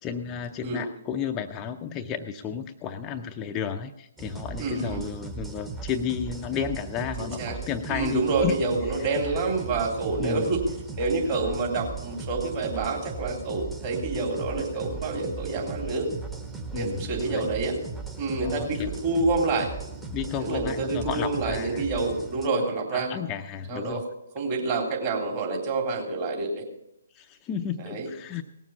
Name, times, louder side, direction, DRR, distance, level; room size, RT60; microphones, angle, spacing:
voice 1, 0.0-8.6 10.2-10.5 14.6-14.7 16.7-17.5 18.4-18.9 20.1-21.8 22.9-24.0 27.1-28.4, left 7 dB, 20° left, 5 dB, 0.6 m, -32 dB
sound 1, 4.2-22.5, right 4 dB, 10° right, 1.1 m, -38 dB
voice 2, 4.6-5.0 7.2-7.6 7.9-10.7 10.9-16.1 16.7-17.7 18.2-19.7 20.4-23.1 23.7-24.0 24.4-26.6 27.8-28.1, right 3 dB, 35° right, 0 dB, 3.5 m, -27 dB
18.0 x 7.3 x 7.1 m, 0.80 s
figure-of-eight pair, 135°, 0 cm